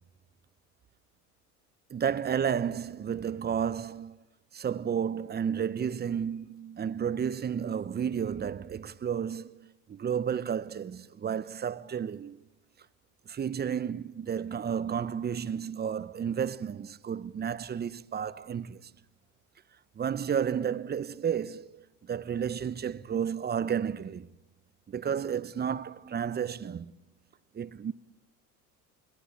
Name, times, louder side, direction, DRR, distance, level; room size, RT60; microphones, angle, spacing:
voice 1, 1.9-4.2 4.5-12.4 13.3-18.8 20.0-24.3 24.9-26.9 27.5-27.9, right 8 dB, 20° right, 0.9 m, -32 dB
29.0 x 21.5 x 8.5 m
hypercardioid pair, 90°, 46 cm